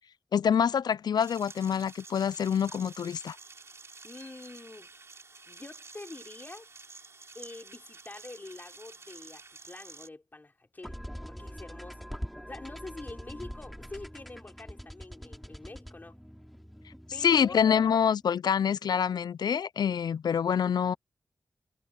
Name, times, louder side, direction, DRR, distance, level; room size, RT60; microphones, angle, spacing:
voice 1, 0.3-3.4 17.2-20.9, left 7 dB, 70° left, 0.3 m, -26 dB
sound 1, 1.2-10.1, right 3 dB, 40° right, 3.7 m, -50 dB
voice 2, 4.0-4.9 5.5-6.7 7.3-11.0 11.3-12.1 12.4-16.2 17.1-17.6 20.5-20.6, left 2 dB, 25° left, 4.5 m, -46 dB
sound 2, 10.8-18.2, equal, ahead, 3.5 m, -44 dB
wide cardioid pair, 145°, 7 cm